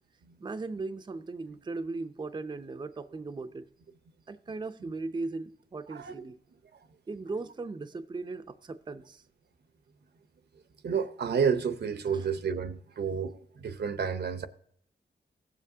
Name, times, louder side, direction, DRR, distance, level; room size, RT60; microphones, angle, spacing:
voice 1, 0.4-3.7 4.3-6.4 7.1-9.2 12.1-12.2, right 3 dB, 25° right, 0.5 m, -38 dB
voice 2, 10.8-14.5, right 6 dB, 65° right, 0.8 m, -30 dB
16.5 x 7.5 x 2.7 m
wide cardioid pair, 100°, 18 cm